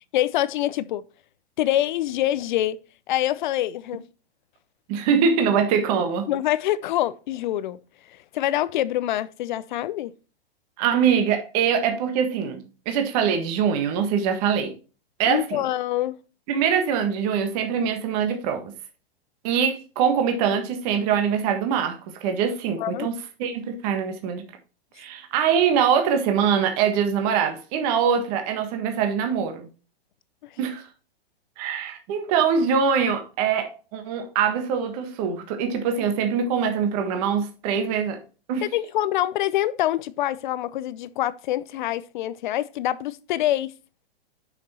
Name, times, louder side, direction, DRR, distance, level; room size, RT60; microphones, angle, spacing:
voice 1, 0.1-1.0 1.6-2.8 3.1-4.0 6.3-7.8 8.3-10.1 15.2-16.2 22.8-23.1 38.6-43.7, left 13 dB, 50° left, 0.6 m, -25 dB
voice 2, 4.9-6.3 10.8-14.7 15.2-15.6 16.5-18.7 19.4-24.4 25.0-29.7 30.6-30.9 31.6-38.2 38.5-38.7, right 7 dB, 35° right, 1.5 m, -23 dB
6.6 x 6.0 x 4.2 m
hypercardioid pair, 145°, 32 cm